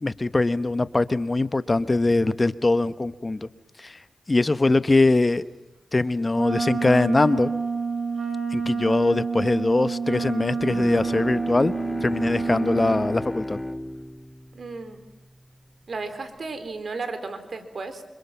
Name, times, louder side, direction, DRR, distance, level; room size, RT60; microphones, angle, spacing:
voice 1, 0.0-3.5 3.8-4.0 4.3-5.4 5.9-7.5 8.5-11.7 12.0-13.6, left 2 dB, 40° left, 13 dB, 1.1 m, -22 dB
Wind instrument woodwind instrument, 6.3-13.1, right 5 dB, 45° right, 6.7 m, -28 dB
Bowed string instrument, 10.5-15.9, left 1 dB, 10° left, 2.4 m, -35 dB
voice 2, 14.5-15.0 15.9-18.0, right 3 dB, 65° right, 9 dB, 4.1 m, -34 dB
28.0 x 27.0 x 6.0 m, 0.99 s
cardioid pair, 40°, 0 cm